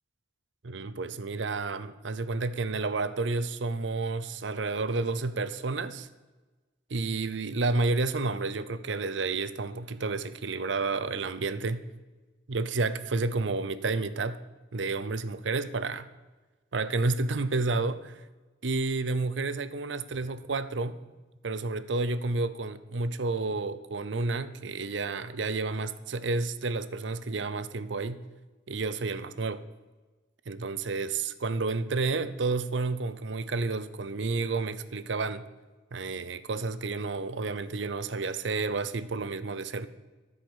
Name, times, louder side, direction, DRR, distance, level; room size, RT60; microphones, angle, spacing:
voice 1, 0.6-6.1 6.9-11.8 12.5-14.4 14.7-16.1 16.7-18.2 18.6-21.0 21.4-28.2 28.7-29.6 30.5-35.5 35.9-39.9, right 3 dB, 70° right, 0.7 m, -30 dB
13.0 x 5.1 x 7.9 m
head